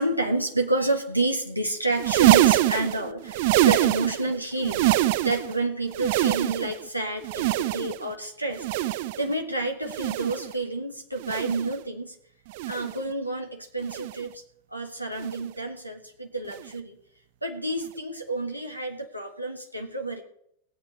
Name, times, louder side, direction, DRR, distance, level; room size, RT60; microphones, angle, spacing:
voice 1, 0.0-4.9 5.2-12.2 12.7-14.4 14.7-17.0 17.4-20.2, right 2 dB, 90° right, 2 dB, 1.6 m, -29 dB
sound 1, 1.9-4.3 4.6-5.6 5.9-6.8 7.2-8.1 8.5-9.3 9.8-10.5 11.2-11.8 12.5-13.0 13.8-14.3 15.2-15.5 16.5-16.7 17.8-17.9, right 15 dB, 50° right, 0.6 m, -24 dB
18.5 x 8.4 x 5.4 m, 0.71 s
figure-of-eight pair, 90°, 0 cm